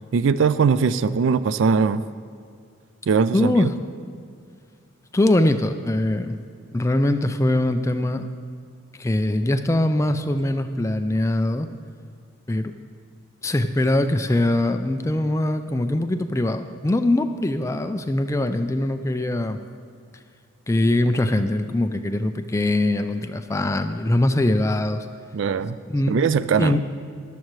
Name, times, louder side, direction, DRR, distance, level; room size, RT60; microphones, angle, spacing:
voice 1, 0.1-2.0 3.1-3.5 25.3-25.8 26.1-26.8, right 5 dB, 65° right, 14 dB, 0.3 m, -20 dB
voice 2, 3.3-3.7 5.1-6.4 6.7-8.3 9.0-11.7 12.5-12.7 13.4-19.6 20.7-25.1 25.9-26.2 26.6-26.8, left 1 dB, 15° left, 8 dB, 0.3 m, -22 dB
14.0 x 11.5 x 3.1 m, 2.2 s
head